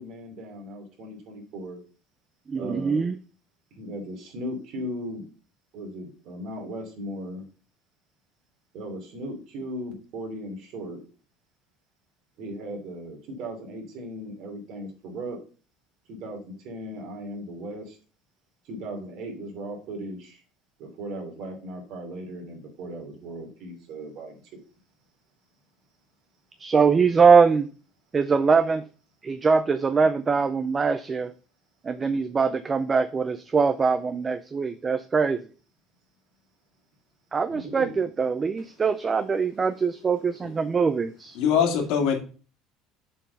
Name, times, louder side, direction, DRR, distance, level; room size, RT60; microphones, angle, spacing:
voice 1, 0.0-1.8 2.5-3.1 3.7-5.2 5.7-7.5 8.7-11.0 12.4-15.4 16.1-18.0 18.6-20.4 20.8-24.6 37.5-38.1, right 1 dB, 55° right, 3.1 m, -37 dB
voice 2, 2.5-3.1 26.6-27.7 28.1-28.8 29.2-31.3 31.8-35.5 37.3-41.1, right 5 dB, 20° right, 0.4 m, -22 dB
voice 3, 41.4-42.2, left 7 dB, 70° left, 2.2 m, -22 dB
7.3 x 4.5 x 5.4 m
cardioid pair, 145°, 0 cm